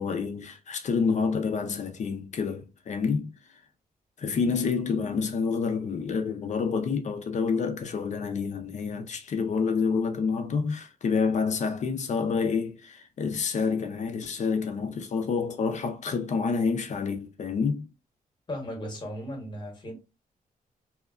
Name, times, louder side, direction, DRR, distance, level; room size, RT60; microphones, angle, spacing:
voice 1, 0.0-3.3 4.2-17.9, left 5 dB, 50° left, 0.6 m, -28 dB
voice 2, 18.5-19.9, equal, 30° left, 1.1 m, -36 dB
2.8 x 2.2 x 2.4 m
cardioid pair, 115°, 15 cm